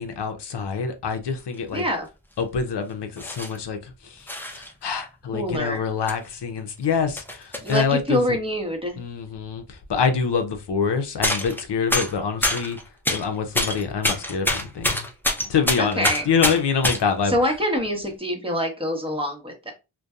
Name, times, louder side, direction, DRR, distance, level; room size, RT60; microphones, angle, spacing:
voice 1, 0.0-1.8 2.4-8.4 9.0-12.8 13.1-15.1 15.4-17.4, left 6 dB, 55° left, 0.6 m, -26 dB
sound 1, 1.5-1.6 2.4-2.6 3.2-3.7 4.3-4.7 5.5-5.6 6.1-6.2 6.6-7.9 9.4-9.5 9.7-9.8 11.2-11.6 11.9-13.3 13.5-17.0 17.8-18.1, left 1 dB, 5° left, 0.6 m, -26 dB
voice 2, 1.7-2.1 5.3-5.8 7.6-9.0 15.8-16.3 17.2-19.7, equal, 10° right, 1.0 m, -25 dB
2.5 x 2.2 x 2.3 m
cardioid pair, 45°, 49 cm